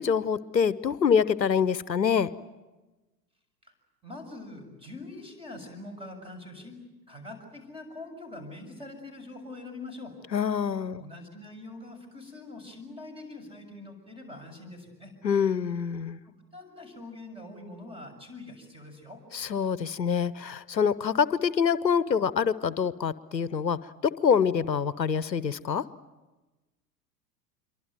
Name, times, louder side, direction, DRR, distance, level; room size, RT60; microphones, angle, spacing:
voice 1, 0.0-2.3 10.3-11.0 15.2-16.2 19.3-25.8, left 6 dB, 80° left, 18 dB, 0.8 m, -26 dB
voice 2, 4.0-6.8 7.1-10.2 11.0-15.1 16.2-19.2, left 2 dB, 10° right, 6 dB, 6.8 m, -44 dB
27.0 x 24.0 x 9.2 m, 1.1 s
figure-of-eight pair, 90°, 49 cm